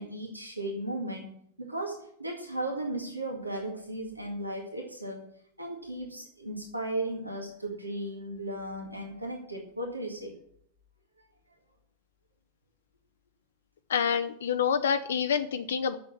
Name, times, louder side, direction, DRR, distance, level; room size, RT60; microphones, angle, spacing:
voice 1, 0.0-5.2 5.6-10.3, right 1 dB, 85° right, 1 dB, 2.0 m, -36 dB
voice 2, 13.9-16.0, left 7 dB, 65° left, 9 dB, 0.5 m, -27 dB
8.5 x 7.0 x 8.5 m, 0.67 s
figure-of-eight pair, 90°, 0 cm